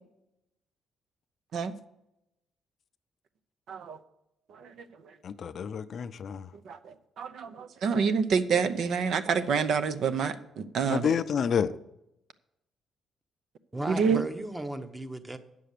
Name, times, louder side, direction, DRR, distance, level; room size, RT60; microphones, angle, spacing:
voice 1, 3.7-4.0 4.5-4.7 6.6-11.1 13.9-14.2, right 6 dB, 70° right, 0.7 m, -28 dB
voice 2, 5.2-6.5 10.9-11.7, left 7 dB, 55° left, 0.5 m, -29 dB
voice 3, 13.7-15.4, right 1 dB, 15° right, 0.9 m, -35 dB
9.1 x 6.9 x 6.6 m
cardioid pair, 90°, 0 cm